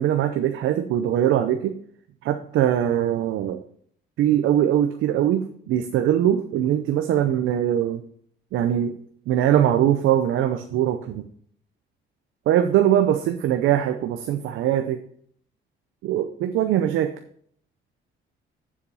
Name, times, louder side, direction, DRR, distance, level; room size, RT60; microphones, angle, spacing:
voice 1, 0.0-1.8 2.2-3.6 4.2-8.0 8.5-9.0 9.3-11.2 12.5-15.0 16.0-17.1, right 11 dB, 85° right, 7 dB, 0.7 m, -21 dB
7.3 x 7.0 x 5.4 m, 0.62 s
cardioid pair, 90°, 20 cm